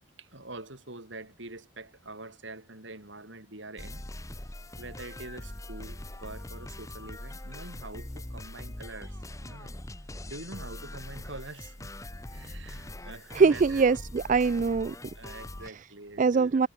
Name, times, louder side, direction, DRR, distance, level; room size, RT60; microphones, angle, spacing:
voice 1, 0.2-4.1 4.8-9.7 10.3-11.9 12.3-13.8 15.1-16.7, right 2 dB, 60° right, 5.1 m, -45 dB
sound 1, 3.8-15.7, left 1 dB, 15° left, 1.2 m, -42 dB
voice 2, 13.3-14.9 16.2-16.7, right 4 dB, 40° right, 0.3 m, -23 dB
head